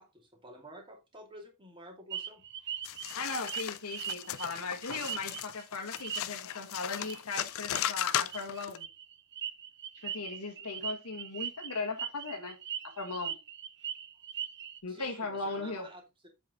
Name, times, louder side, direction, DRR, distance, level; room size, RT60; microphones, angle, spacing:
voice 1, 0.0-2.4 14.9-16.3, right 1 dB, 25° right, 2.6 m, -50 dB
sound 1, 2.1-5.6 5.9-6.5 7.0-7.2 7.5-7.8 8.3-14.8, right 9 dB, 50° right, 0.7 m, -40 dB
sound 2, 2.8-8.8, left 10 dB, 65° left, 0.6 m, -36 dB
voice 2, 3.1-8.9 10.0-12.6 12.8-13.4 14.8-15.9, left 3 dB, 80° left, 1.7 m, -38 dB
7.7 x 5.3 x 3.8 m
head